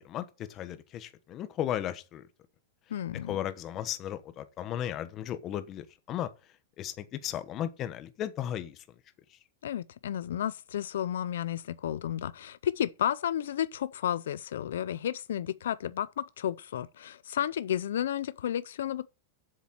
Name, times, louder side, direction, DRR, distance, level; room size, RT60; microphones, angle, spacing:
voice 1, 0.0-2.2 3.3-6.3 6.8-8.8 9.3-9.4, left 11 dB, 30° left, 1.1 m, -35 dB
voice 2, 2.9-3.3 9.6-19.1, left 10 dB, 85° left, 0.5 m, -32 dB
7.3 x 7.2 x 7.4 m
supercardioid pair, 145°, 0 cm